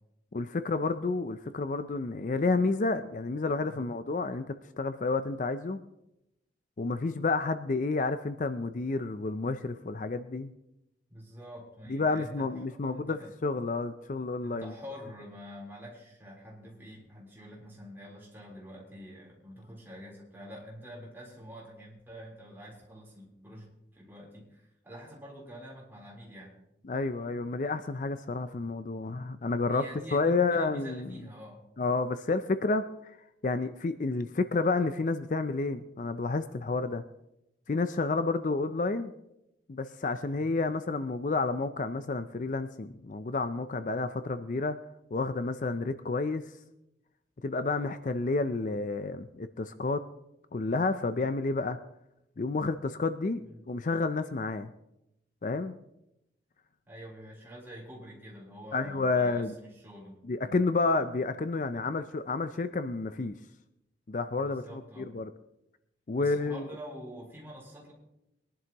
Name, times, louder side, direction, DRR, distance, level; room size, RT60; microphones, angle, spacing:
voice 1, 0.3-4.4 4.8-5.8 6.8-10.5 11.9-14.7 26.8-29.8 30.1-31.1 31.8-33.2 33.4-37.0 37.7-39.1 39.7-44.8 45.1-46.4 47.4-50.0 50.5-51.8 52.4-53.4 53.7-54.7 55.4-55.7 58.7-59.5 60.2-63.4 64.1-65.3 66.1-66.6, left 3 dB, 45° left, 11 dB, 0.4 m, -30 dB
voice 2, 11.1-13.3 14.4-26.6 29.7-31.6 40.2-40.5 53.4-53.6 56.9-60.6 64.4-65.1 66.2-67.9, equal, 15° right, -4 dB, 3.7 m, -47 dB
22.0 x 11.0 x 3.0 m, 0.85 s
head